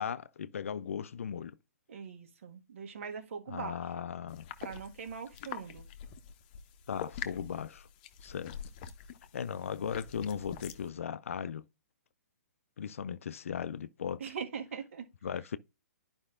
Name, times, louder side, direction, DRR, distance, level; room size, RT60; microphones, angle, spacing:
voice 1, 0.0-1.5 3.5-4.5 6.9-7.9 8.2-8.6 9.3-11.6 12.8-14.2 15.2-15.6, left 7 dB, 60° left, 0.4 m, -37 dB
voice 2, 1.9-3.8 4.6-5.9 14.2-15.0, right 6 dB, 55° right, 1.7 m, -41 dB
sound 1, 4.3-10.9, left 9 dB, 35° left, 0.8 m, -45 dB
11.0 x 5.2 x 2.5 m
figure-of-eight pair, 120°, 8 cm